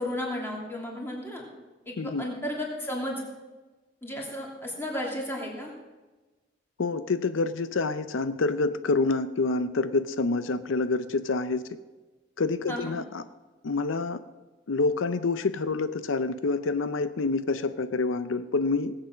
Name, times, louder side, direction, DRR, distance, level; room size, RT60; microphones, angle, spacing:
voice 1, 0.0-1.4 1.9-3.2 4.0-5.7 12.7-12.9, left 1 dB, 10° left, -2 dB, 2.8 m, -33 dB
voice 2, 6.8-11.6 12.4-13.2 13.6-14.2 14.7-18.9, left 3 dB, 90° left, 12 dB, 0.6 m, -27 dB
18.0 x 8.2 x 6.1 m, 1.2 s
head